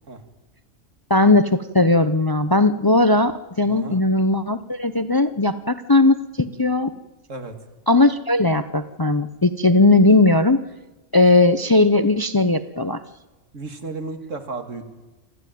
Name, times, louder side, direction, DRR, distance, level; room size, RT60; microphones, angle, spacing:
voice 1, 1.1-6.9 7.9-10.6 11.1-13.0, left 2 dB, 25° left, 11 dB, 0.5 m, -18 dB
voice 2, 3.6-4.1 7.3-7.6 13.5-14.9, right 3 dB, 85° right, 6 dB, 2.4 m, -33 dB
27.5 x 13.0 x 9.2 m, 1.1 s
omnidirectional pair, 1.3 m